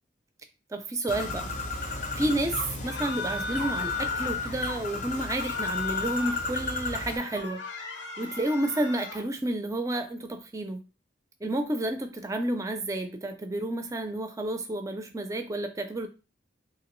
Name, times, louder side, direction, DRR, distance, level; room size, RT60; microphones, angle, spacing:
voice 1, 0.7-1.5 2.2-7.6 8.2-10.8 11.4-16.1, right 1 dB, 15° right, 7 dB, 0.4 m, -30 dB
Bird, 1.1-7.2, left 3 dB, 40° left, 0.5 m, -34 dB
sound 1, 2.8-4.5 5.2-6.5 6.9-9.3, left 4 dB, 80° left, 0.6 m, -35 dB
2.9 x 2.8 x 3.0 m, 0.32 s
head